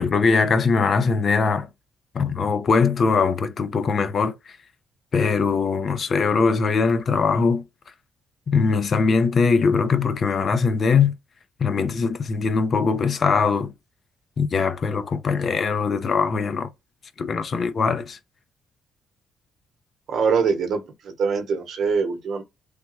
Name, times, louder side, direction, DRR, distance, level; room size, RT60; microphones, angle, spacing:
voice 1, 0.0-1.7 2.1-4.3 5.1-7.6 8.5-11.1 11.6-13.7 14.4-16.7 17.2-18.2, left 5 dB, 50° left, 0.5 m, -21 dB
voice 2, 20.1-22.4, right 5 dB, 65° right, 0.9 m, -23 dB
3.3 x 2.2 x 2.9 m
cardioid pair, 90°, 0 cm